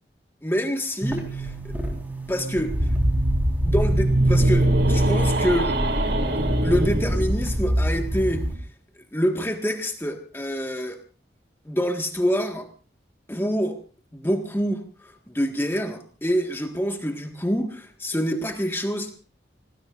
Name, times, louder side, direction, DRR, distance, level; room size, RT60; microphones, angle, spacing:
voice 1, 0.4-1.7 2.3-2.9 3.6-5.8 6.6-8.4 9.1-11.0 11.6-12.7 13.3-13.8 14.1-19.1, equal, 15° left, 4 dB, 1.6 m, -26 dB
sound 1, 1.0-8.5, right 2 dB, 10° right, 4.1 m, -26 dB
sound 2, 2.7-8.6, equal, 75° right, 3.4 m, -23 dB
26.5 x 19.0 x 2.5 m, 0.36 s
head